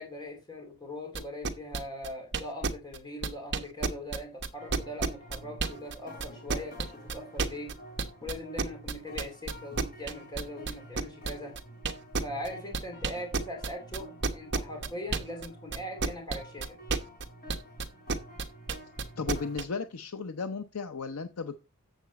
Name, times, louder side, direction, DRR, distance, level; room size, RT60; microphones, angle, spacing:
voice 1, 0.0-7.8 8.2-11.6 12.2-16.8, left 1 dB, 20° left, 1 dB, 2.6 m, -41 dB
sound 1, 1.1-5.9 6.2-15.5 15.7-19.6, right 4 dB, 50° right, 1.1 m, -30 dB
sound 2, 4.6-19.6, right 1 dB, 40° left, 3.3 m, -49 dB
voice 2, 19.2-21.6, left 4 dB, 70° left, 8 dB, 0.7 m, -35 dB
8.0 x 7.2 x 4.1 m, 0.27 s
head